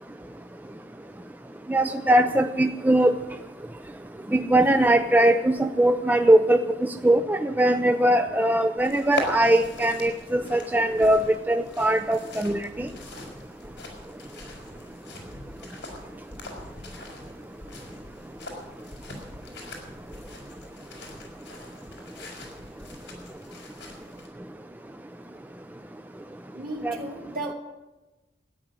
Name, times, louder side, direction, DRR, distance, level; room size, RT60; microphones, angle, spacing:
voice 1, 1.7-3.1 4.3-6.6 7.0-12.9 26.8-27.0, right 1 dB, 10° right, 0.4 m, -21 dB
sound 1, 8.8-24.3, left 2 dB, 70° left, 4.6 m, -41 dB
voice 2, 26.5-27.5, right 2 dB, 50° right, 2.4 m, -34 dB
13.5 x 9.3 x 9.5 m
head